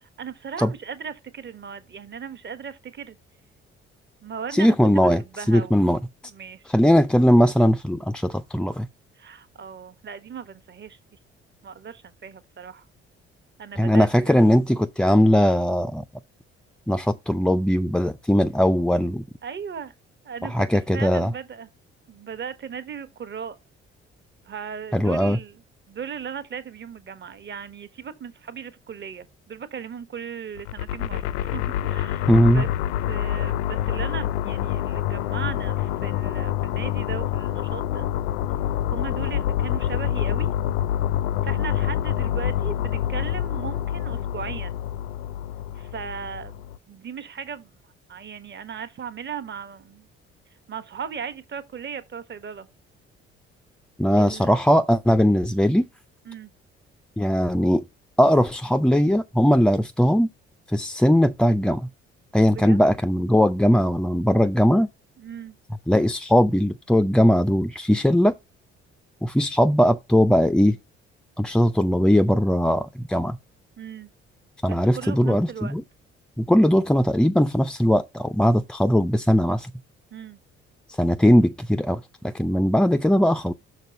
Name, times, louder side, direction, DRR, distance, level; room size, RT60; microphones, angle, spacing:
voice 1, 0.0-3.2 4.2-6.6 9.2-11.0 11.6-12.9 13.6-14.4 19.4-19.9 20.2-20.6 20.9-21.7 22.1-23.6 24.4-25.6 25.9-32.7 33.1-38.1 38.9-40.5 41.4-44.8 45.7-47.7 48.1-50.1 50.7-52.7 54.2-54.6 56.3-56.5 62.5-62.8 65.2-65.6 73.8-74.1 74.7-75.7 80.1-80.4, right 7 dB, 35° right, 1.1 m, -37 dB
voice 2, 4.5-5.2 5.5-6.0 6.7-8.9 13.8-16.0 16.9-19.2 20.4-21.3 24.9-25.4 32.3-32.6 54.0-55.9 57.2-57.8 58.2-60.3 60.7-61.9 62.3-64.9 65.9-68.3 69.2-70.8 71.4-73.4 74.6-75.8 76.4-79.7 80.9-83.5, equal, 5° left, 0.3 m, -19 dB
sound 1, 30.6-46.8, left 11 dB, 70° left, 0.5 m, -27 dB
6.6 x 4.3 x 5.0 m
figure-of-eight pair, 45°, 33 cm